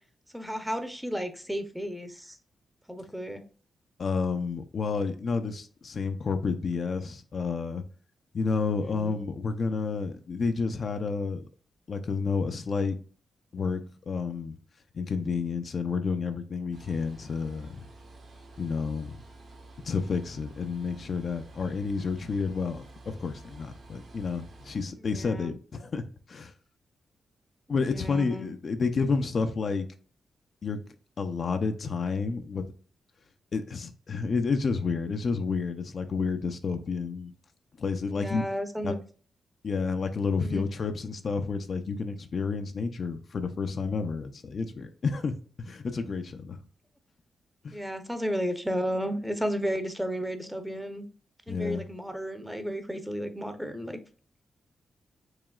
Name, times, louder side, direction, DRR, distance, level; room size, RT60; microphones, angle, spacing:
voice 1, 0.3-2.4 2.9-3.4 8.8-9.2 25.0-25.5 27.7-28.5 38.0-39.0 40.4-40.7 47.7-51.1 51.5-54.0, equal, 5° right, 0.7 m, -33 dB
voice 2, 4.0-7.8 8.3-11.5 11.9-13.0 13.5-13.8 14.1-14.6 14.9-17.8 18.6-19.2 19.8-26.5 27.7-29.9 30.6-30.8 31.2-32.7 33.5-37.3 37.8-38.5 38.8-38.9 39.6-46.6 47.6-47.8 51.5-51.8, left 4 dB, 50° left, 0.4 m, -30 dB
sound 1, 16.7-24.8, right 2 dB, 70° right, 1.5 m, -50 dB
4.8 x 3.1 x 2.3 m
cardioid pair, 90°, 0 cm